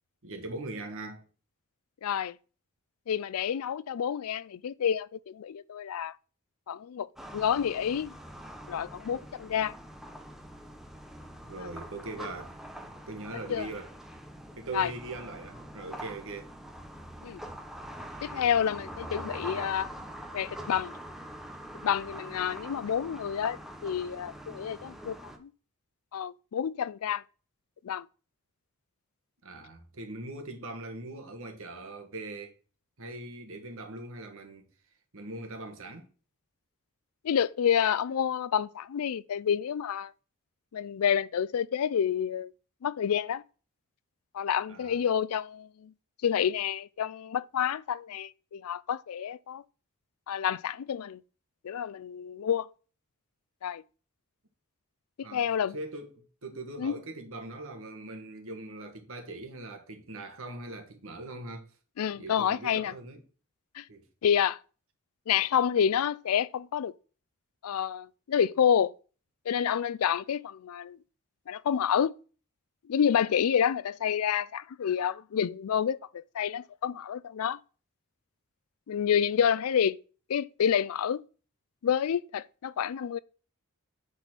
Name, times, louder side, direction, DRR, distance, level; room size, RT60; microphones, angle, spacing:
voice 1, 0.2-1.2 11.4-12.5 13.1-13.9 14.6-16.5 29.4-32.5 33.0-34.6 35.1-36.1 44.7-45.0 55.2-61.7 62.1-63.2 63.9-64.0, right 2 dB, 65° right, 1.5 m, -41 dB
voice 2, 2.0-2.4 3.1-6.1 6.7-8.1 8.7-9.7 11.6-11.7 13.5-13.7 14.7-14.9 17.2-17.4 18.2-19.9 20.3-20.9 21.8-23.6 23.8-25.5 26.1-27.2 27.8-28.1 37.2-40.1 40.7-42.5 42.8-43.4 44.3-45.9 46.2-49.6 50.3-51.2 51.6-52.7 53.6-53.8 55.2-55.8 56.8-56.9 62.0-62.9 63.8-63.9 64.2-64.6 65.3-66.9 67.6-68.9 69.5-71.0 71.5-72.1 72.9-77.6 78.9-80.0 80.3-81.2 81.8-83.2, left 8 dB, 70° left, 0.4 m, -29 dB
sound 1, 7.2-25.4, equal, ahead, 0.9 m, -44 dB
9.3 x 4.1 x 6.0 m
head